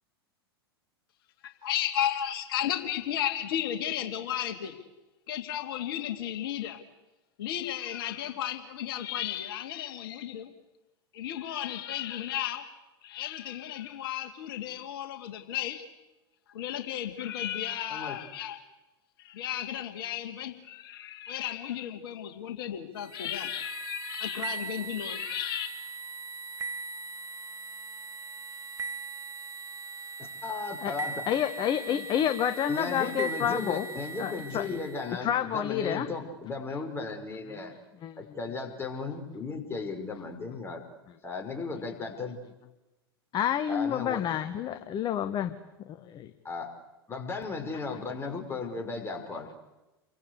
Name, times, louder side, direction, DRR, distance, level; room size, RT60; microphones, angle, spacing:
voice 1, 1.6-4.8 5.3-6.8 7.4-10.5 11.1-12.7 13.0-15.9 16.5-18.6 19.2-25.7, left 11 dB, 65° left, 6 dB, 2.4 m, -34 dB
sound 1, 23.0-35.1, right 4 dB, 25° right, 2.1 m, -40 dB
voice 2, 30.4-31.2 32.7-37.7 38.2-40.8 41.2-42.4 43.7-44.3 46.4-46.7 47.1-49.5, left 4 dB, 20° left, 3 dB, 5.6 m, -35 dB
voice 3, 31.3-33.8 34.2-34.8 35.2-36.1 38.0-38.1 43.3-45.5 45.9-46.3, left 10 dB, 35° left, 9 dB, 1.5 m, -29 dB
29.0 x 23.5 x 8.3 m, 1.1 s
hypercardioid pair, 95°, 13 cm